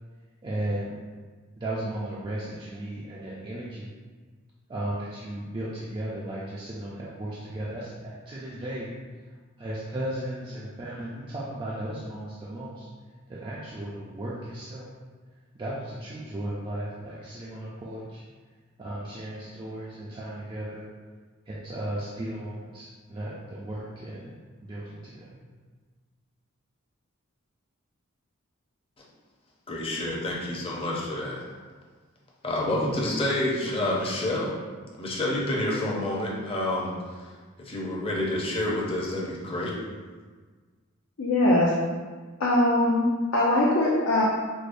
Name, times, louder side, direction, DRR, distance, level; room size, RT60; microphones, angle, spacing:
voice 1, 0.4-1.0 1.6-3.9 4.7-8.9 9.6-12.9 13.3-14.9 15.5-18.2 18.8-20.9 21.5-24.4 24.6-25.4, right 1 dB, 25° right, -6 dB, 0.3 m, -35 dB
voice 2, 29.7-31.4 32.4-34.5 35.0-36.9 37.6-39.7, left 1 dB, 25° left, -4 dB, 0.6 m, -28 dB
voice 3, 41.2-41.7 42.4-43.0 43.3-44.3, left 1 dB, 70° left, -6 dB, 0.6 m, -21 dB
4.8 x 2.1 x 2.5 m, 1.4 s
head